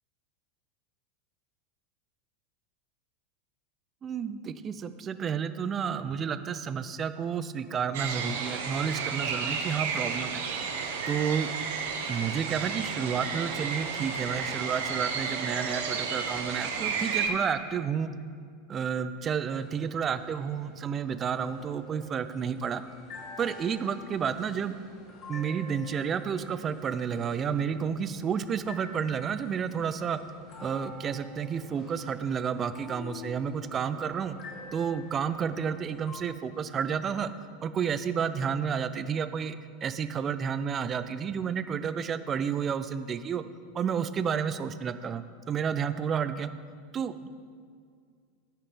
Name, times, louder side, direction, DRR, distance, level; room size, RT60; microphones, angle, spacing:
voice 1, 4.0-10.4 11.1-11.5 12.1-18.1 18.7-22.8 23.4-24.7 25.3-30.2 30.6-34.4 34.7-37.3 37.6-39.6 39.8-43.4 43.7-46.5 46.9-47.3, right 7 dB, 25° right, 12 dB, 0.4 m, -31 dB
sound 1, 7.9-17.3, right 6 dB, 60° right, 1.1 m, -32 dB
sound 2, 19.5-36.2, left 3 dB, 40° left, 2.2 m, -48 dB
13.0 x 5.8 x 5.2 m, 2.1 s
figure-of-eight pair, 85°, 0 cm